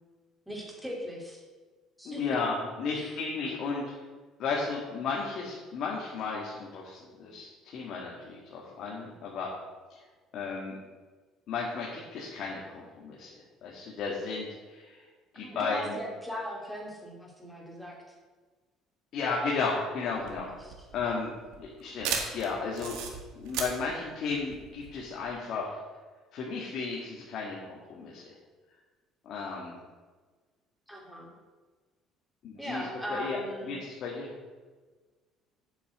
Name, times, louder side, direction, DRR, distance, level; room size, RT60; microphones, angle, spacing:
voice 1, 0.5-1.4 2.0-2.4 2.9-3.2 15.3-18.0 20.1-20.7 30.9-31.3 32.6-33.7, equal, ahead, -1 dB, 2.6 m, -39 dB
voice 2, 2.0-3.8 4.4-9.5 10.3-10.8 11.5-13.3 13.6-15.0 15.3-16.0 19.1-20.5 20.9-21.3 21.6-22.9 23.3-25.8 26.3-28.3 29.3-29.8 32.4-32.8 33.1-33.4 33.7-34.3, left 4 dB, 55° left, -3 dB, 1.9 m, -34 dB
sound 1, 20.1-25.3, right 6 dB, 85° right, 1.7 m, -36 dB
8.3 x 5.8 x 8.0 m, 1.4 s
cardioid pair, 125°, 0 cm